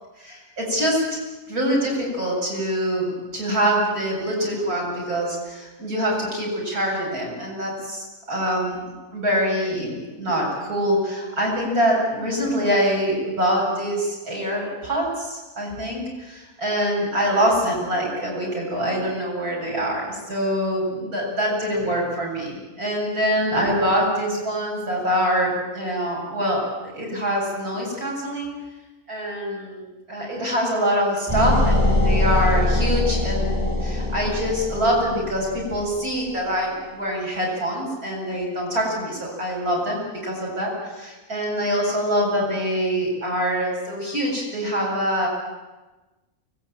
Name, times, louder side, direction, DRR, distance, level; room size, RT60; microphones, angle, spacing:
voice 1, 0.2-1.0 1.5-8.8 9.1-28.5 29.1-29.8 30.1-45.3, equal, 85° right, -2 dB, 8.3 m, -24 dB
sound 1, 31.3-36.1, left 2 dB, 10° right, 7.4 m, -22 dB
24.5 x 21.0 x 9.0 m, 1.1 s
omnidirectional pair, 1.5 m